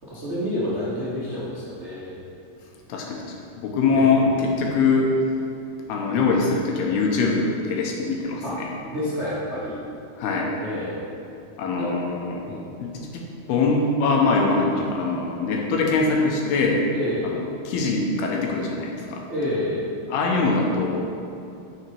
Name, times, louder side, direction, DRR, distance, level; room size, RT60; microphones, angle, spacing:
voice 1, 0.0-2.1 3.9-4.3 8.4-8.6 8.9-9.8 10.6-11.0 11.8-11.9 12.5-12.7 16.9-17.3 19.3-19.9, left 1 dB, 65° right, -10 dB, 0.7 m, -29 dB
voice 2, 2.9-5.1 5.9-8.7 10.2-10.6 11.6-12.5 12.8-13.2 13.5-16.9 17.2-17.4 17.7-19.2 20.1-21.1, left 4 dB, 85° left, -1 dB, 3.0 m, -23 dB
8.8 x 6.5 x 4.6 m, 2.7 s
omnidirectional pair, 4.4 m